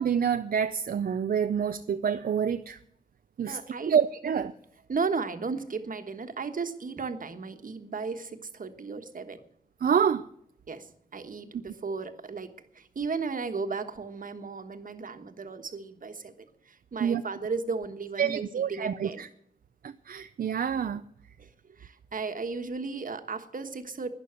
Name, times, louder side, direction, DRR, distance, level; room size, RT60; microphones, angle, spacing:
voice 1, 0.0-2.8 3.4-3.6 3.9-4.5 9.8-10.3 17.0-17.2 18.2-19.3 19.8-21.0, right 7 dB, 80° right, 9 dB, 0.5 m, -27 dB
voice 2, 3.5-4.0 4.9-9.4 10.7-19.3 21.4-24.1, right 4 dB, 65° right, 8 dB, 1.4 m, -35 dB
12.0 x 10.5 x 8.1 m, 0.71 s
wide cardioid pair, 85°, 15 cm